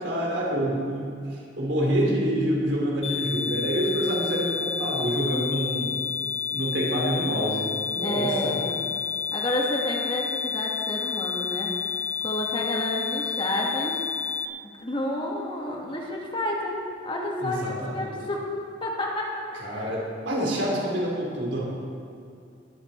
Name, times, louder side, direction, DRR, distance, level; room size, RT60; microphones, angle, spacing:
voice 1, 0.0-6.0 6.5-8.6 17.4-18.1 19.6-21.7, equal, 70° right, -4 dB, 3.7 m, -27 dB
sound 1, 3.0-14.5, left 7 dB, 75° left, 1.0 m, -30 dB
voice 2, 8.0-8.8 9.3-11.7 12.2-14.0 14.6-16.8 17.0-18.4 18.8-19.8, left 1 dB, 25° left, -1 dB, 1.6 m, -30 dB
21.0 x 8.7 x 4.4 m, 2.4 s
head